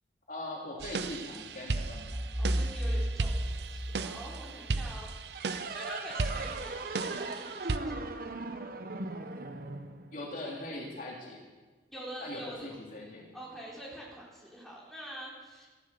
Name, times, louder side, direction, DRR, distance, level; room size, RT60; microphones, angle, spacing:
voice 1, 0.3-2.2 6.2-6.4 10.1-11.4 12.2-13.3, left 1 dB, 50° left, -3 dB, 3.3 m, -41 dB
sound 1, 0.8-7.8, right 3 dB, 70° right, 0.7 m, -36 dB
sound 2, 2.1-4.9, equal, 25° right, 0.9 m, -33 dB
voice 2, 2.4-5.1 5.7-8.0 11.9-12.6 13.3-15.7, equal, ahead, -5 dB, 4.1 m, -45 dB
sound 3, 5.3-10.6, right 3 dB, 55° right, 1.1 m, -39 dB
14.5 x 12.0 x 7.1 m, 1.3 s
head